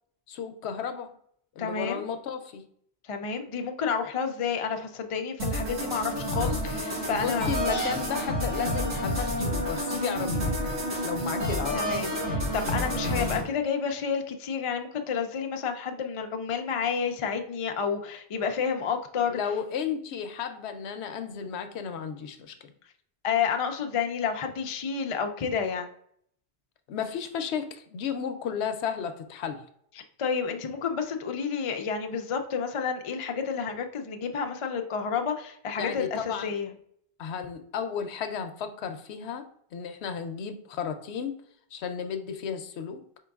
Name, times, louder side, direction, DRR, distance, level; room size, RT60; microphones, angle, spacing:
voice 1, 0.3-1.1 1.6-2.6 7.1-10.4 11.0-11.8 19.3-22.7 26.9-29.6 35.8-36.5 37.2-39.4 39.7-41.4 41.7-43.0, left 7 dB, 80° left, 8 dB, 0.9 m, -33 dB
voice 2, 1.6-2.0 3.1-7.9 11.7-19.4 23.2-25.9 30.2-36.7, left 6 dB, 60° left, 5 dB, 0.3 m, -30 dB
sound 1, 5.4-13.4, equal, 80° right, 1.9 m, -29 dB
4.6 x 3.7 x 2.3 m, 0.66 s
omnidirectional pair, 1.1 m